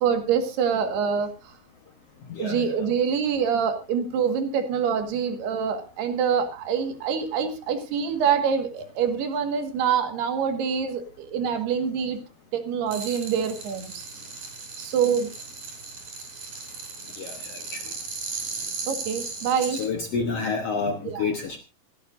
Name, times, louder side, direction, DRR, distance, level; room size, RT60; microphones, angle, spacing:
voice 1, 0.0-1.3 2.4-12.2 12.5-14.1 14.8-15.3 18.9-19.8 21.1-21.3, right 7 dB, 90° right, 7 dB, 3.8 m, -25 dB
voice 2, 2.3-2.7 17.2-17.8 19.7-21.6, left 4 dB, 65° left, 5 dB, 1.6 m, -29 dB
sound 1, 12.9-19.9, right 4 dB, 50° right, 5.9 m, -36 dB
27.0 x 10.0 x 2.6 m, 0.30 s
omnidirectional pair, 4.5 m